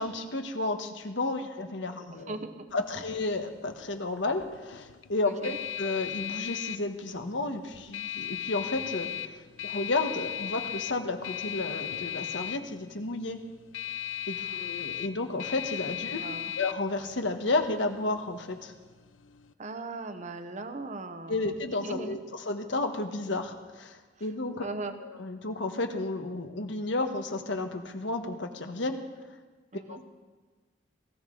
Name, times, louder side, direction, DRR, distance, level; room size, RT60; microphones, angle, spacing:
voice 1, 0.0-2.4 2.7-13.4 14.3-16.2 16.6-18.7 21.3-24.7 25.0-29.0 29.9-30.0, left 2 dB, 70° left, 6 dB, 1.3 m, -32 dB
voice 2, 2.1-2.7 5.2-5.6 14.3-14.9 16.1-16.5 19.6-22.2 24.2-24.3 24.6-25.0 29.7-30.0, right 3 dB, 40° right, 8 dB, 0.9 m, -39 dB
sound 1, 2.7-19.5, left 12 dB, 90° left, 0.6 m, -38 dB
18.0 x 16.0 x 3.9 m, 1.3 s
head